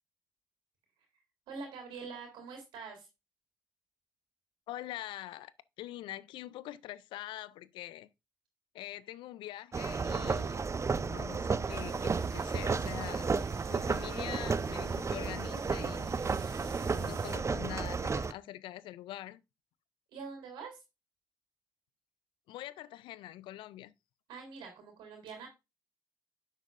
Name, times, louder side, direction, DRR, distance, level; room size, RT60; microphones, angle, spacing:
voice 1, 1.5-3.1 20.1-20.8 24.3-25.5, right 5 dB, 85° right, 3.6 m, -45 dB
voice 2, 4.7-5.5 5.8-8.1 8.7-10.7 11.0-13.3 13.7-16.1 17.0-19.4 22.5-23.9, left 14 dB, 85° left, 0.4 m, -44 dB
sound 1, 9.7-18.3, right 4 dB, 35° right, 0.6 m, -33 dB
sound 2, 11.7-17.4, right 6 dB, 70° right, 2.1 m, -51 dB
9.8 x 7.4 x 2.6 m
supercardioid pair, 45°, 8 cm